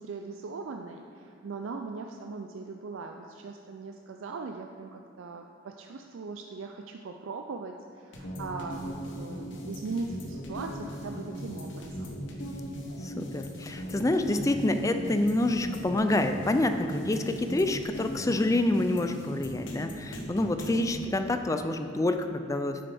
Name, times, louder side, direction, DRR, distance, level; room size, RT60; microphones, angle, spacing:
voice 1, 0.0-12.1, right 4 dB, 85° right, 4 dB, 0.4 m, -39 dB
sound 1, 8.1-21.0, equal, 65° left, 1.2 m, -39 dB
voice 2, 13.0-22.8, left 2 dB, 15° left, 7 dB, 0.4 m, -27 dB
10.0 x 7.7 x 3.5 m, 2.4 s
head